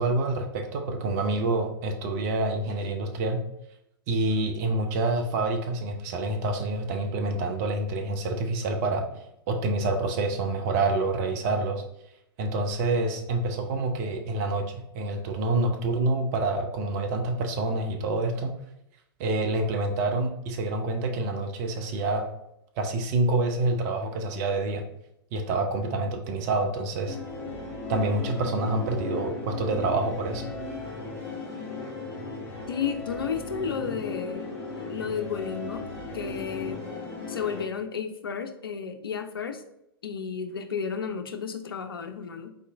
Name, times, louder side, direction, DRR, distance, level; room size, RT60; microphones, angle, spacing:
voice 1, 0.0-3.4 4.1-9.1 9.5-11.8 12.4-18.5 19.2-22.3 22.8-24.8 25.3-27.2 27.9-30.5, right 2 dB, 40° right, 3 dB, 0.7 m, -27 dB
sound 1, 27.1-37.6, left 3 dB, 10° left, 1.6 m, -36 dB
voice 2, 32.7-34.5 34.9-35.9 36.1-36.8 37.3-39.6 40.0-42.5, left 6 dB, 65° left, 7 dB, 0.5 m, -32 dB
3.9 x 3.0 x 3.4 m, 0.79 s
figure-of-eight pair, 100°, 13 cm